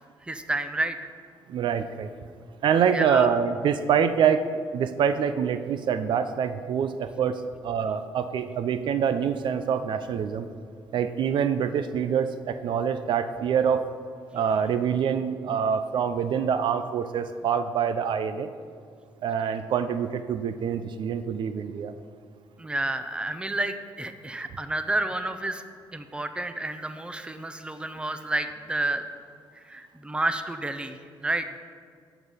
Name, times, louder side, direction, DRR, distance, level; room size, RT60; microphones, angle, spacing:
voice 1, 0.2-1.0 2.9-3.3 22.6-25.6 25.9-29.1 29.5-31.6, right 2 dB, 10° right, 9 dB, 0.7 m, -30 dB
voice 2, 1.5-2.1 2.6-10.5 10.9-13.8 14.3-18.5 19.2-21.9, right 7 dB, 65° right, 10 dB, 0.5 m, -25 dB
9.9 x 7.1 x 5.6 m, 2.1 s
cardioid pair, 85°, 9 cm